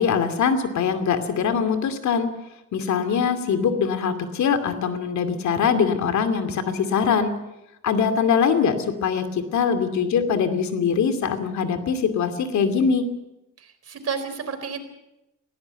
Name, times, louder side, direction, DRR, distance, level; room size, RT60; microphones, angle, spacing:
voice 1, 0.0-2.3 2.7-7.3 7.8-13.1, left 6 dB, 70° left, 9 dB, 2.6 m, -22 dB
voice 2, 13.6-14.8, right 6 dB, 55° right, 9 dB, 4.0 m, -31 dB
20.0 x 16.5 x 8.2 m, 0.88 s
cardioid pair, 90°, 30 cm